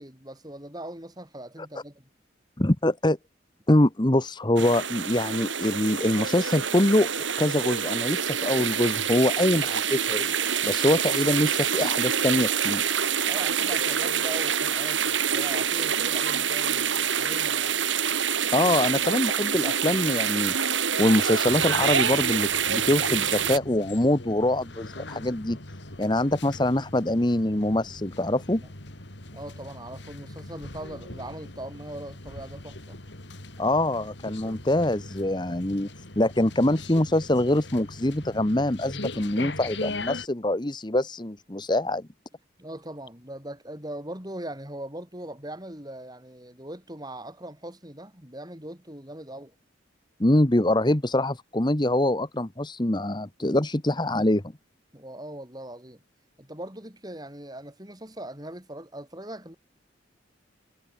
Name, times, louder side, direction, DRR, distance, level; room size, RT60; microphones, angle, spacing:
voice 1, 0.0-2.1 10.8-11.0 13.2-17.8 19.0-19.1 28.6-28.7 29.3-33.0 42.6-49.6 54.9-56.0 56.4-59.6, right 1 dB, 20° right, 6.2 m, -40 dB
voice 2, 2.6-3.2 3.7-7.1 7.4-10.3 10.6-13.0 18.5-20.5 21.0-25.6 26.0-28.6 33.6-35.9 36.1-42.1 50.2-54.4, left 1 dB, 25° left, 1.1 m, -24 dB
sound 1, 4.6-23.6, right 8 dB, 75° right, 6.6 m, -26 dB
sound 2, 21.4-40.3, left 2 dB, 65° left, 3.6 m, -40 dB
head